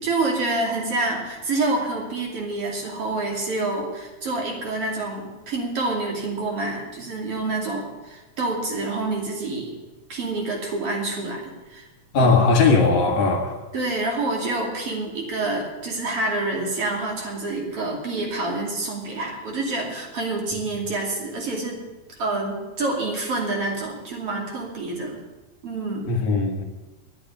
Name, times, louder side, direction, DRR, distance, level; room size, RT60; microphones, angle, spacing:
voice 1, 0.0-9.7 10.1-11.8 12.2-12.3 13.7-21.8 22.2-25.2 25.6-26.1, right 2 dB, 50° right, 3.6 m, -27 dB
voice 2, 12.1-13.6 26.1-26.7, left 3 dB, 75° left, 3.3 m, -19 dB
11.5 x 8.7 x 9.8 m
omnidirectional pair, 3.4 m